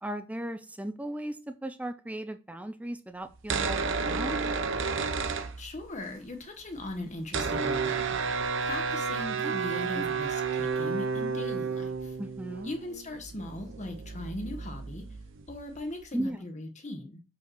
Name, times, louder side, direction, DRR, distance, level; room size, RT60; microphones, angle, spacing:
voice 1, 0.0-4.5 9.4-10.1 12.2-12.7 16.1-16.5, right 1 dB, 5° right, 9 dB, 0.4 m, -37 dB
sound 1, 3.3-6.1 6.4-6.5 6.6-16.1, right 5 dB, 60° right, 0.7 m, -32 dB
voice 2, 5.6-8.2 8.6-12.2 12.6-15.0 15.5-17.2, left 1 dB, 35° left, 4 dB, 1.2 m, -39 dB
5.3 x 4.6 x 6.2 m, 0.32 s
head